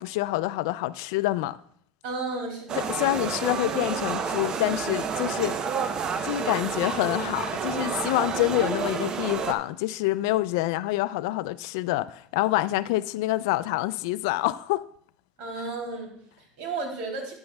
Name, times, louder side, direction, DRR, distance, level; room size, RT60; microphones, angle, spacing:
voice 1, 0.0-1.6 2.8-5.6 6.2-14.8, left 17 dB, 80° left, 0.3 m, -27 dB
voice 2, 2.0-2.9 15.4-17.3, right 3 dB, 75° right, 2.9 m, -33 dB
sound 1, 2.7-9.5, right 6 dB, 40° right, 0.7 m, -30 dB
11.0 x 9.6 x 2.3 m
supercardioid pair, 120°, 2 cm